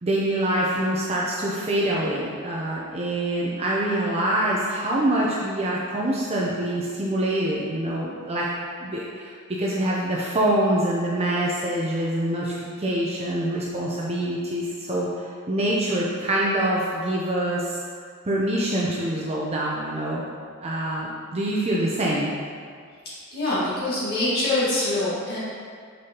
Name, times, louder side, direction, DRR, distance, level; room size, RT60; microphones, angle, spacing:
voice 1, 0.0-8.5 8.8-17.8 18.3-20.2 20.6-22.3, right 1 dB, 30° right, -4 dB, 0.6 m, -25 dB
voice 2, 23.3-25.4, left 2 dB, 50° left, -10 dB, 1.6 m, -24 dB
6.4 x 5.5 x 2.9 m, 2.1 s
head